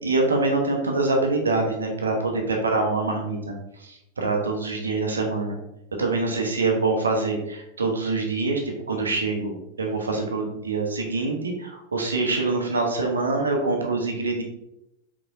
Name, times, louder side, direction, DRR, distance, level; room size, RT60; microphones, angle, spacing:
voice 1, 0.0-3.5 3.8-5.6 6.0-8.6 8.9-14.4, right 3 dB, 75° right, 1 dB, 0.8 m, -25 dB
4.9 x 3.5 x 2.6 m, 0.88 s
figure-of-eight pair, 90°, 0 cm